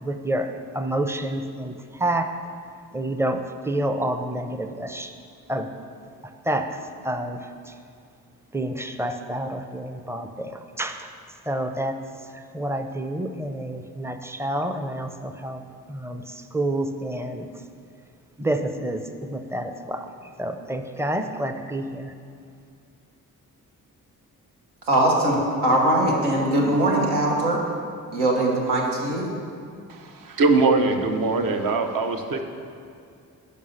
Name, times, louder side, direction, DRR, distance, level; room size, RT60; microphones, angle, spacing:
voice 1, 0.0-2.3 2.9-5.1 5.5-5.7 6.4-7.7 8.5-11.1 11.5-12.0 12.3-15.6 15.9-17.5 18.4-20.1 20.4-22.1, right 1 dB, 5° right, 7 dB, 0.5 m, -29 dB
voice 2, 24.9-27.6 28.1-29.3, right 1 dB, 90° right, -2 dB, 1.2 m, -21 dB
voice 3, 29.9-32.4, right 3 dB, 55° right, 5 dB, 0.8 m, -22 dB
5.6 x 5.4 x 6.4 m, 2.4 s
supercardioid pair, 45°, 39 cm